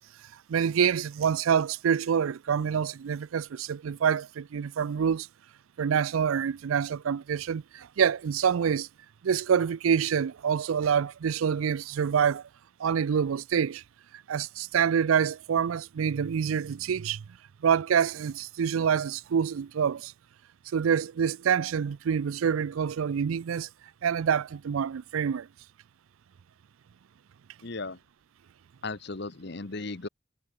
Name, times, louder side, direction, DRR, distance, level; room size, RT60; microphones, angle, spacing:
voice 1, 0.5-5.3 5.8-8.9 9.2-12.4 12.8-13.8 14.3-17.2 17.6-20.1 20.7-23.7 24.0-25.5, right 7 dB, 85° right, 0.4 m, -26 dB
voice 2, 27.6-28.0 28.8-30.1, left 3 dB, 55° left, 1.1 m, -36 dB
head